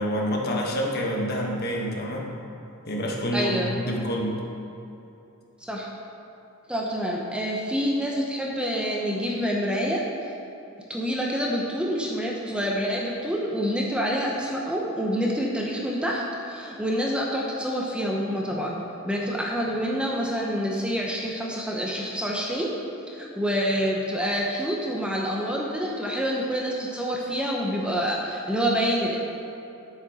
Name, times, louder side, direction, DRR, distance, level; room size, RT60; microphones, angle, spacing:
voice 1, 0.0-2.3 2.9-4.4, equal, 45° left, -1 dB, 1.2 m, -27 dB
voice 2, 3.3-3.7 5.6-5.9 6.7-10.0 10.9-18.8 19.0-22.7 23.1-29.2, equal, 5° right, -3 dB, 0.7 m, -27 dB
9.4 x 7.5 x 4.1 m, 2.9 s
head